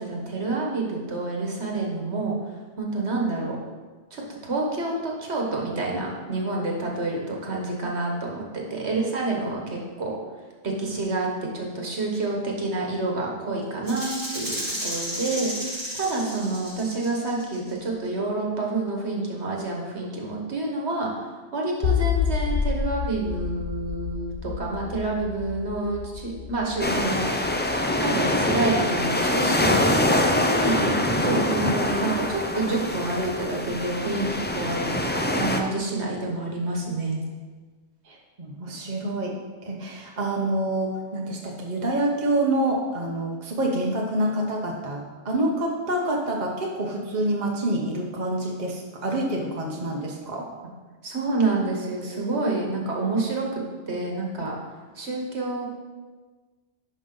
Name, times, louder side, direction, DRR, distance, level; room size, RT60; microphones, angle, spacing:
voice 1, 0.0-2.4 2.8-3.6 4.1-8.4 8.7-10.2 10.6-27.3 28.0-29.9 30.4-37.2 51.0-54.5 54.9-55.7, right 2 dB, 70° right, -1 dB, 1.6 m, -28 dB
Rattle (instrument), 13.9-17.7, equal, 20° right, 1.6 m, -33 dB
sound 1, 21.8-29.0, left 7 dB, 90° left, 1.0 m, -29 dB
sound 2, 26.8-35.6, left 1 dB, 15° left, 0.4 m, -24 dB
voice 2, 38.0-39.3 39.7-50.5, right 1 dB, 40° right, -1 dB, 1.1 m, -27 dB
10.5 x 5.3 x 3.8 m, 1.3 s
omnidirectional pair, 1.2 m